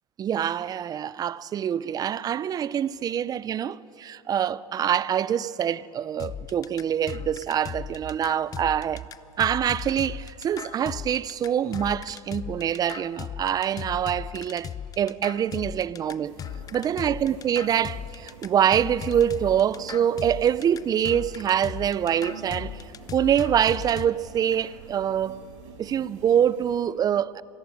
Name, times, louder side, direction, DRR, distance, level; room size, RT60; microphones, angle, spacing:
voice 1, 0.2-9.1 9.4-16.4 16.7-22.8 23.1-25.4 25.8-27.4, right 9 dB, 25° right, 0.5 m, -25 dB
sound 1, 6.2-24.1, left 8 dB, 20° left, 0.5 m, -37 dB
sound 2, 16.2-26.8, right 5 dB, 85° right, 4.3 m, -48 dB
26.0 x 14.5 x 9.8 m
supercardioid pair, 135°, 17 cm